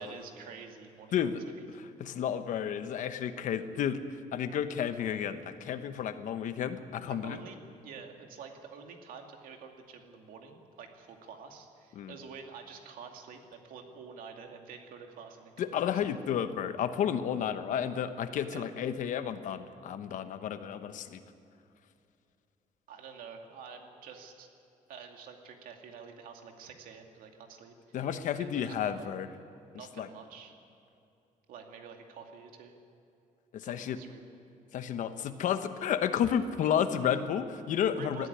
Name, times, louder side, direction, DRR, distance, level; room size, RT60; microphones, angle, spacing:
voice 1, 0.0-1.8 7.1-16.0 18.4-18.7 22.9-24.5 24.9-29.1 29.6-30.6 31.5-32.8 33.6-34.2 38.0-38.3, right 6 dB, 80° right, 3 dB, 2.4 m, -48 dB
voice 2, 1.8-4.0 4.3-7.4 12.0-12.1 15.6-21.2 27.9-29.3 30.0-30.1 33.5-34.0 34.7-38.3, left 8 dB, 65° left, 10 dB, 1.1 m, -31 dB
19.0 x 13.5 x 9.8 m, 2.7 s
cardioid pair, 150°, 14 cm